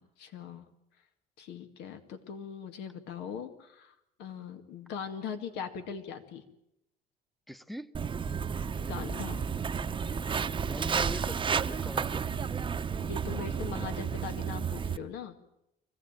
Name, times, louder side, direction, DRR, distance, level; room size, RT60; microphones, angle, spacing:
voice 1, 0.2-0.7 1.4-6.4 8.8-9.5 13.0-15.4, left 7 dB, 85° left, 7 dB, 2.1 m, -40 dB
voice 2, 7.5-7.9 10.6-12.2, equal, ahead, 13 dB, 0.8 m, -42 dB
Walk footsteps, 7.9-15.0, right 6 dB, 30° right, 0.8 m, -32 dB
25.0 x 16.5 x 9.0 m, 0.81 s
cardioid pair, 110°, 17 cm